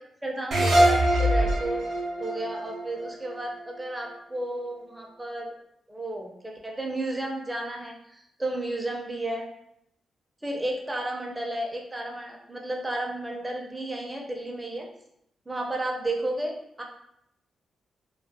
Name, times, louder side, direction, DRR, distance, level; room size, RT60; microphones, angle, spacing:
voice 1, 0.2-1.8 2.2-5.5 5.9-9.4 10.4-14.9 15.5-16.8, right 1 dB, 15° right, 0 dB, 0.5 m, -32 dB
sound 1, 0.5-3.8, right 1 dB, 65° right, 0.5 m, -23 dB
2.3 x 2.1 x 2.6 m, 0.76 s
cardioid pair, 65°, 0 cm